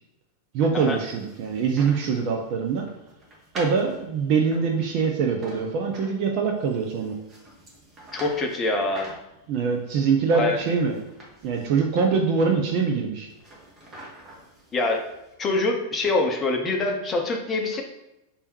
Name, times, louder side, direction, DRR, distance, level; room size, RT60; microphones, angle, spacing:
voice 1, 0.5-2.9 3.6-7.2 9.5-11.0 11.4-13.3, right 5 dB, 45° right, 2 dB, 0.5 m, -23 dB
sound 1, 0.8-15.3, right 1 dB, 25° right, 1.2 m, -46 dB
voice 2, 8.1-9.1 10.3-10.6 14.7-15.0 15.4-17.8, left 2 dB, 25° left, 2 dB, 0.7 m, -25 dB
3.4 x 2.7 x 4.4 m, 0.92 s
figure-of-eight pair, 90°, 0 cm